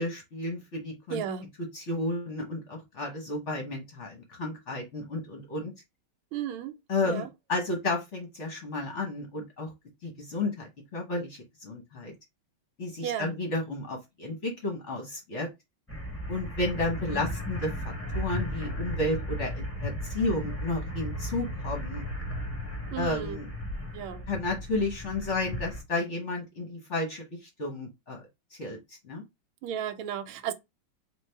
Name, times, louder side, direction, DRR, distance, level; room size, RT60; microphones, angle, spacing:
voice 1, 0.0-1.2 1.7-5.7 6.9-9.7 10.0-12.1 12.8-15.5 16.3-22.1 23.0-23.5 24.3-28.2 28.5-29.2, left 2 dB, 45° left, 1.0 m, -32 dB
voice 2, 1.1-1.5 6.3-6.7 7.0-7.3 13.0-13.3 22.9-23.4 23.9-24.3 29.6-30.5, right 9 dB, 85° right, 1.5 m, -34 dB
sound 1, 15.9-25.8, equal, 20° left, 0.3 m, -35 dB
3.9 x 2.8 x 3.3 m
omnidirectional pair, 2.3 m